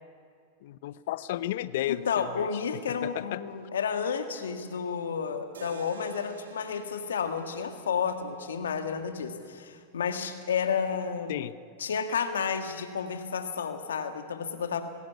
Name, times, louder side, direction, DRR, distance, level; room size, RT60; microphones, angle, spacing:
voice 1, 0.6-2.5 2.9-3.4 11.3-11.5, left 14 dB, 70° left, 17 dB, 0.8 m, -33 dB
voice 2, 1.9-11.3 11.8-14.8, left 6 dB, 85° left, 7 dB, 1.9 m, -31 dB
sound 1, 5.5-9.6, right 4 dB, 90° right, 2.0 m, -50 dB
20.5 x 17.0 x 8.4 m, 2.1 s
hypercardioid pair, 105°, 0 cm